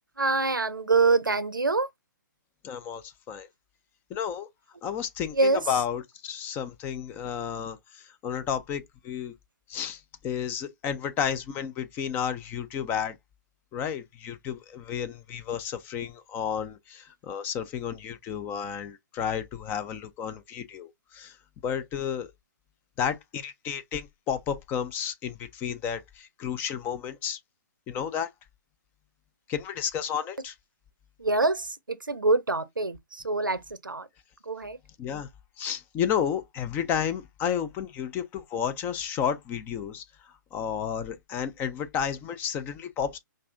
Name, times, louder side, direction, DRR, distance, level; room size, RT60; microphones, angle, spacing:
voice 1, 0.2-1.9 5.3-5.7 31.2-34.1 34.4-34.8, right 3 dB, 85° right, 0.6 m, -25 dB
voice 2, 2.6-3.5 4.1-4.5 4.8-5.4 5.7-9.3 9.7-13.2 13.7-21.4 21.6-22.3 23.0-27.4 27.9-28.3 29.5-30.5 35.0-35.3 35.6-40.0 40.5-43.2, left 8 dB, 15° left, 0.4 m, -32 dB
5.3 x 2.5 x 2.5 m
figure-of-eight pair, 125°, 11 cm